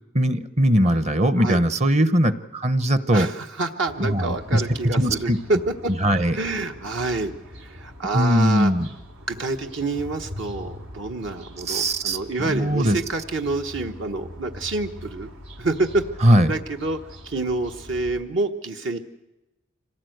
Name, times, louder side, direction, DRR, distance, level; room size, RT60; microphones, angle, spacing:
voice 1, 0.1-3.3 4.0-4.6 5.0-5.4 6.0-6.4 8.1-8.9 11.7-13.0 16.2-16.5, equal, 35° right, 12 dB, 0.9 m, -20 dB
voice 2, 3.1-5.7 6.3-8.7 9.3-15.3 15.6-16.0 16.5-19.0, right 2 dB, 65° right, 4 dB, 1.2 m, -27 dB
sound 1, 3.9-18.2, equal, 90° right, 4.1 m, -42 dB
26.0 x 18.0 x 7.9 m, 1.0 s
head